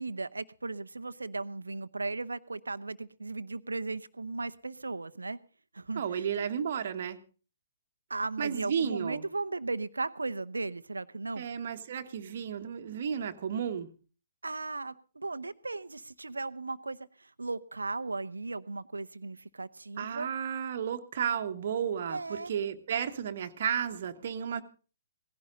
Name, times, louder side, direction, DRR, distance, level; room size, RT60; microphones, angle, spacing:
voice 1, 0.0-5.4 5.7-6.2 8.1-11.5 14.4-20.3 22.1-22.5, right 3 dB, 75° right, 14 dB, 0.8 m, -36 dB
voice 2, 5.9-7.2 8.4-9.2 11.4-13.9 20.0-24.6, right 8 dB, 45° right, 7 dB, 1.3 m, -33 dB
17.5 x 16.0 x 3.9 m, 0.37 s
figure-of-eight pair, 125°, 0 cm